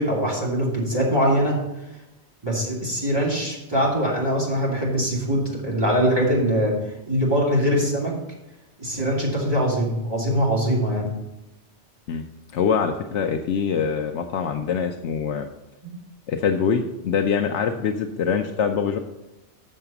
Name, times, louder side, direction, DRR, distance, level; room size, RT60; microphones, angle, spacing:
voice 1, 0.0-1.5 2.4-8.1 8.8-11.1 15.8-15.9, equal, 20° right, -5 dB, 2.6 m, -22 dB
voice 2, 12.5-15.5 16.3-19.0, left 6 dB, 80° left, 5 dB, 0.9 m, -24 dB
6.8 x 6.4 x 6.9 m, 0.98 s
omnidirectional pair, 1.2 m